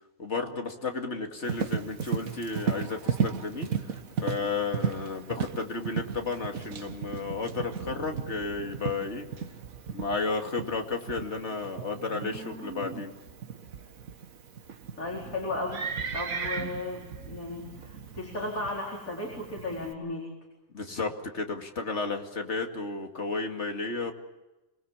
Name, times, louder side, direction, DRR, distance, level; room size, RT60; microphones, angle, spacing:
voice 1, 0.2-9.3 9.9-13.1 20.7-24.1, left 4 dB, 55° left, 4 dB, 2.6 m, -33 dB
Livestock farm animals working animals, 1.4-19.9, right 6 dB, 80° right, 1.8 m, -36 dB
voice 2, 15.0-15.8 16.1-20.3, left 2 dB, 80° left, -2 dB, 4.8 m, -35 dB
26.0 x 20.5 x 7.3 m, 1.0 s
omnidirectional pair, 1.4 m